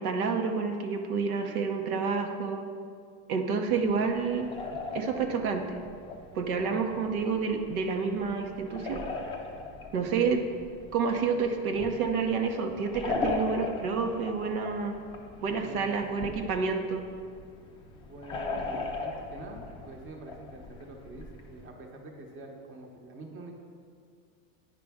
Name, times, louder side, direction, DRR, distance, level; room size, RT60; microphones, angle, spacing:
voice 1, 0.0-2.7 3.3-4.5 4.9-5.8 6.3-9.0 9.9-10.4 10.9-15.0 15.4-17.1, right 5 dB, 90° right, 4 dB, 0.9 m, -29 dB
sound 1, 3.7-21.7, left 3 dB, 15° left, 0.4 m, -39 dB
voice 2, 6.5-6.9 15.6-16.0 18.1-23.5, right 2 dB, 30° right, 2 dB, 0.9 m, -46 dB
9.3 x 5.1 x 3.5 m, 2.2 s
supercardioid pair, 140°, 41 cm